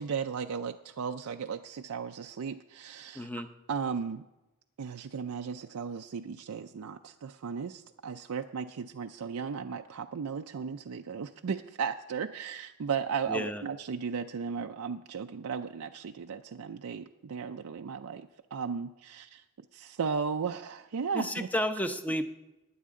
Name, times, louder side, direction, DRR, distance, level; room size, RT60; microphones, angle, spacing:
voice 1, 0.0-3.4 3.7-4.2 4.8-19.4 19.7-21.5, right 6 dB, 75° right, 6 dB, 0.5 m, -35 dB
voice 2, 3.1-3.5 13.3-13.6 21.1-22.3, equal, 5° left, 8 dB, 0.7 m, -32 dB
20.0 x 9.4 x 3.7 m, 0.99 s
head